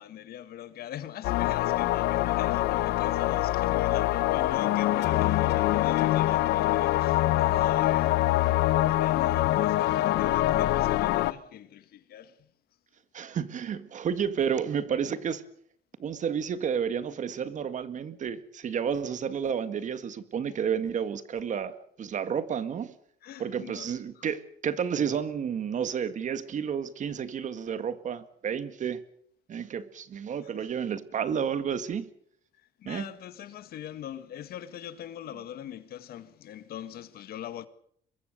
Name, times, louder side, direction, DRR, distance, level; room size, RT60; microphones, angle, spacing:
voice 1, 0.0-8.4 8.8-12.5 23.2-24.3 30.4-30.7 32.8-37.7, left 11 dB, 65° left, 1.8 m, -41 dB
sound 1, 1.2-11.3, left 15 dB, 80° left, 1.0 m, -24 dB
voice 2, 13.1-15.5 16.0-22.9 23.4-29.0 29.5-32.1 32.9-33.1, right 7 dB, 45° right, 1.9 m, -31 dB
24.0 x 21.5 x 6.7 m
cardioid pair, 110°, 17 cm